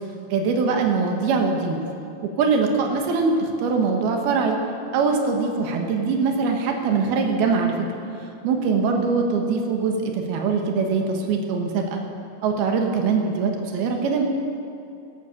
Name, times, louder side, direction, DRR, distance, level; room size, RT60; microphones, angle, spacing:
voice 1, 0.3-1.8 2.4-4.6 4.9-7.7 8.4-12.0 12.4-14.2, right 4 dB, 70° right, 2 dB, 3.2 m, -22 dB
18.0 x 11.5 x 6.8 m, 2.6 s
omnidirectional pair, 4.9 m